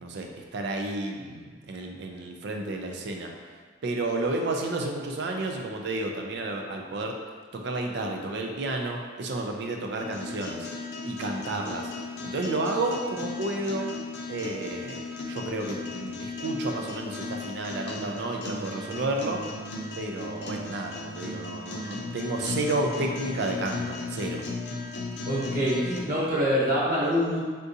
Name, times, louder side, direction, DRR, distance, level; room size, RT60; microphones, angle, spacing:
voice 1, 0.0-3.3 3.8-7.2 7.5-10.7 11.0-11.9 12.2-13.9 14.3-15.0 15.3-19.4 20.0-24.4, right 2 dB, 65° right, 2 dB, 0.4 m, -31 dB
sound 1, 10.0-26.0, left 3 dB, 65° left, 0.4 m, -36 dB
voice 2, 25.3-27.4, equal, 50° right, -7 dB, 0.9 m, -25 dB
3.6 x 2.6 x 2.6 m, 1.5 s
head